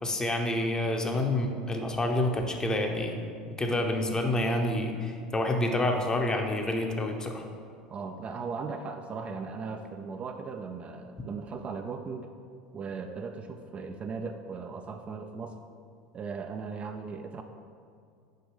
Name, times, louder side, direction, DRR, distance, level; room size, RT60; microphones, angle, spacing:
voice 1, 0.0-3.2 3.5-7.4, left 1 dB, 20° left, 3 dB, 0.9 m, -28 dB
voice 2, 7.9-12.3 12.7-15.6 16.1-17.4, right 5 dB, 35° right, 5 dB, 0.5 m, -37 dB
6.6 x 5.1 x 4.9 m, 2.3 s
hypercardioid pair, 80°, 4 cm